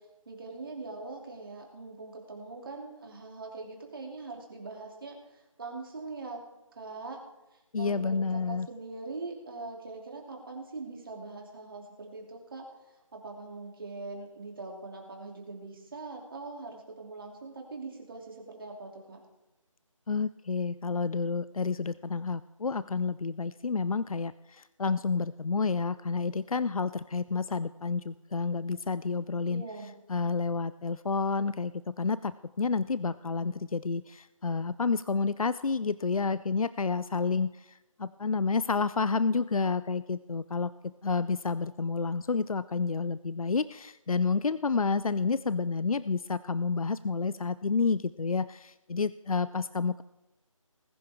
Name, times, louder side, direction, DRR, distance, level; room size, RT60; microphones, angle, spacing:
voice 1, 0.3-6.4 6.7-7.2 7.5-19.2 29.4-29.9, right 3 dB, 40° right, 1 dB, 2.9 m, -42 dB
voice 2, 7.7-8.7 20.1-29.6 30.1-50.0, left 4 dB, 85° left, 16 dB, 0.5 m, -30 dB
20.0 x 10.0 x 3.6 m, 1.0 s
figure-of-eight pair, 160°, 18 cm